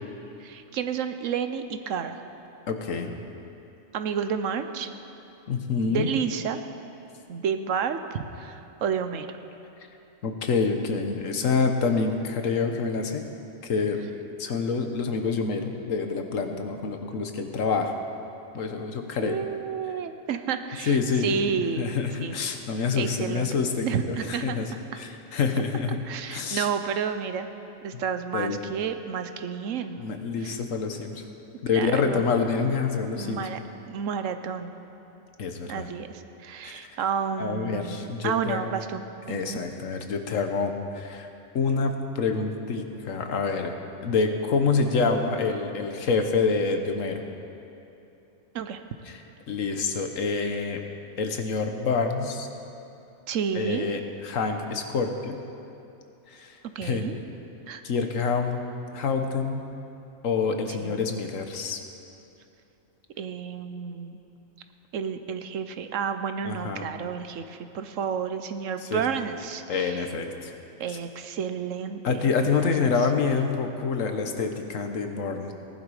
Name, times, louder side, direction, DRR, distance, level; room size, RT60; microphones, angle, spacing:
voice 1, 0.4-2.2 3.9-4.9 5.9-6.6 7.3-9.3 19.2-21.9 22.2-22.4 23.0-23.5 23.8-24.6 26.1-27.5 27.8-30.0 30.4-30.6 31.7-32.3 33.1-33.6 33.9-34.7 35.7-39.6 48.5-48.8 53.3-53.9 56.7-57.2 57.7-57.8 60.8-61.1 63.2-64.2 64.9-70.1 70.8-72.3 72.6-72.7, right 7 dB, 85° right, 9 dB, 1.1 m, -31 dB
voice 2, 2.7-3.1 5.5-6.1 10.2-13.2 13.6-14.0 14.4-18.0 18.5-19.4 20.8-21.3 21.8-24.7 24.9-26.7 27.9-28.0 28.3-28.6 30.0-31.2 31.6-33.7 35.4-35.9 36.6-36.9 37.4-38.7 39.3-41.3 41.5-43.7 44.0-47.2 49.1-49.2 49.5-50.8 51.2-52.5 53.5-55.4 56.3-57.0 57.8-58.6 58.9-59.6 60.2-61.8 66.4-66.9 68.8-69.0 69.7-70.5 70.9-71.0 72.0-75.5, left 5 dB, 85° left, 5 dB, 1.4 m, -27 dB
18.5 x 11.5 x 4.9 m, 2.8 s
omnidirectional pair, 1.3 m